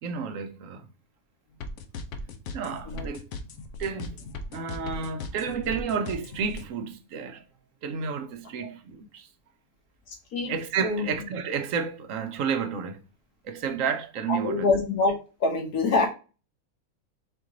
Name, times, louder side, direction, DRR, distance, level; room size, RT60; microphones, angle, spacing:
voice 1, 0.0-0.9 2.5-3.3 3.8-4.2 4.5-7.4 7.8-9.3 10.5-13.0 13.4-14.7, right 6 dB, 70° right, 0.9 m, -31 dB
sound 1, 1.6-6.6, left 3 dB, 65° left, 0.9 m, -38 dB
voice 2, 10.1-10.5 10.8-11.1 14.3-15.1 15.4-16.1, left 3 dB, 90° left, 1.7 m, -25 dB
4.4 x 2.9 x 3.7 m
omnidirectional pair, 1.5 m